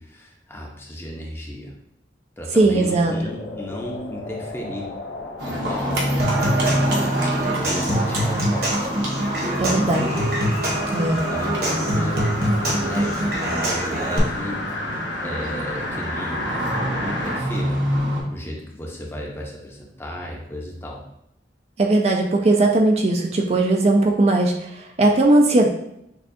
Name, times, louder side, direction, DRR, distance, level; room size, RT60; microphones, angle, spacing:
voice 1, 0.0-1.7 2.4-4.9 5.4-6.1 6.5-8.8 9.4-10.3 11.1-12.3 12.6-17.9 18.3-21.0, equal, 15° left, -2 dB, 0.7 m, -34 dB
sound 1, 2.5-17.5 17.9-18.0, left 2 dB, 85° left, 0.5 m, -33 dB
voice 2, 2.5-3.1 9.6-10.1 10.9-11.2 21.8-25.7, right 2 dB, 35° right, 1 dB, 0.4 m, -18 dB
Livestock farm animals working animals, 5.4-18.2, equal, 85° right, 1.2 m, -27 dB
Human voice / Acoustic guitar / Percussion, 6.2-14.2, right 1 dB, 60° right, 1.1 m, -25 dB
6.6 x 2.3 x 2.6 m, 0.80 s
head